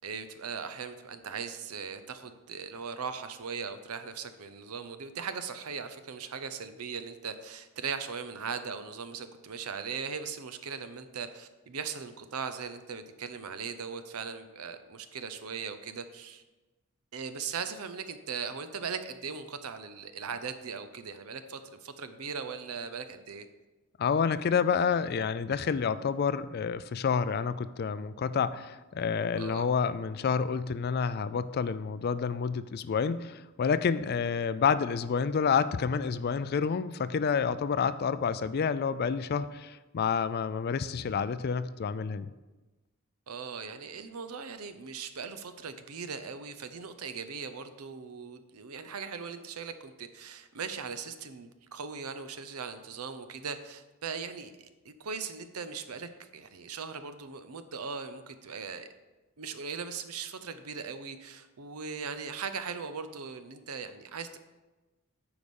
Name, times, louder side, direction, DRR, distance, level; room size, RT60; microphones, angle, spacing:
voice 1, 0.0-16.4 17.1-23.5 29.4-29.7 43.3-54.5 54.8-58.9 59.4-64.4, right 5 dB, 90° right, 10 dB, 0.7 m, -39 dB
voice 2, 24.0-42.3, left 6 dB, 45° left, 14 dB, 0.3 m, -29 dB
9.3 x 4.9 x 5.4 m, 1.1 s
head